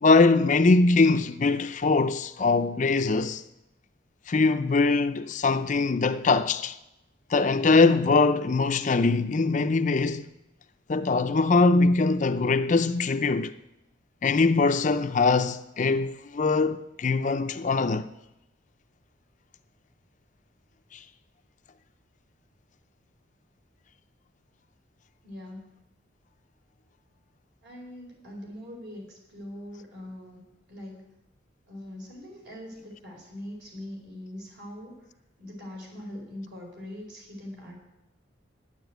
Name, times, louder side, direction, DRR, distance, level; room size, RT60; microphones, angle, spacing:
voice 1, 0.0-3.4 4.3-6.8 7.3-10.3 10.9-13.5 14.2-18.1 20.9-21.0, left 3 dB, 40° left, 0.4 m, -22 dB
voice 2, 25.2-25.8 27.6-31.1 31.7-34.9 35.4-37.8, left 1 dB, 60° right, 4.7 m, -42 dB
9.7 x 9.1 x 8.0 m
head